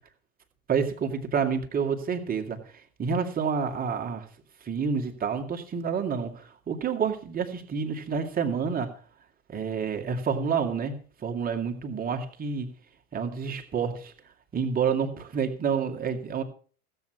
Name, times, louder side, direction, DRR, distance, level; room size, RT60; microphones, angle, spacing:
voice 1, 0.7-4.3 4.6-8.9 9.5-10.9 11.2-12.7 13.1-14.1 14.5-16.4, right 6 dB, 20° right, 3 dB, 2.3 m, -29 dB
16.5 x 8.2 x 6.1 m, 0.43 s
figure-of-eight pair, 90°, 44 cm